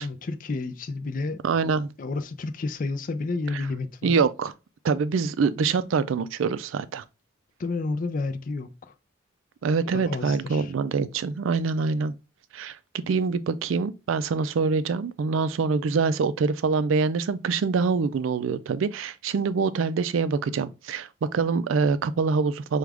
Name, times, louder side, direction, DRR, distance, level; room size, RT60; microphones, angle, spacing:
voice 1, 0.0-1.4 2.0-4.1 7.6-8.9 9.9-10.7, left 3 dB, 45° left, 0.4 m, -30 dB
voice 2, 1.4-1.9 3.5-3.7 4.0-4.5 4.8-7.0 9.6-12.1 12.5-22.8, right 4 dB, 85° right, 0.4 m, -25 dB
6.0 x 2.3 x 3.4 m
head